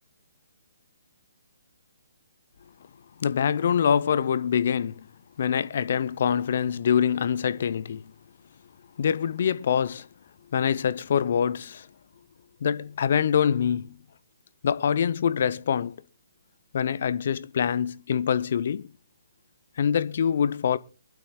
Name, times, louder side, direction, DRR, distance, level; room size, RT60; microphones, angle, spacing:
voice 1, 3.2-5.1 5.4-8.1 9.0-10.1 10.5-11.9 12.6-14.0 14.6-15.9 16.7-18.9 19.8-20.8, left 8 dB, 50° left, 0.7 m, -25 dB
23.5 x 12.0 x 2.3 m
figure-of-eight pair, 135°, 0 cm